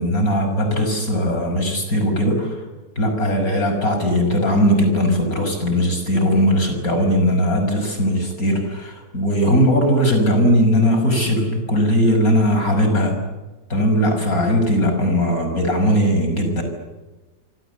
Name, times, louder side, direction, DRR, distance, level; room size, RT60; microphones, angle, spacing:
voice 1, 0.0-2.6 3.0-13.2 13.7-16.6, equal, 50° left, 5 dB, 6.3 m, -19 dB
26.5 x 26.5 x 8.1 m, 1.2 s
omnidirectional pair, 1.9 m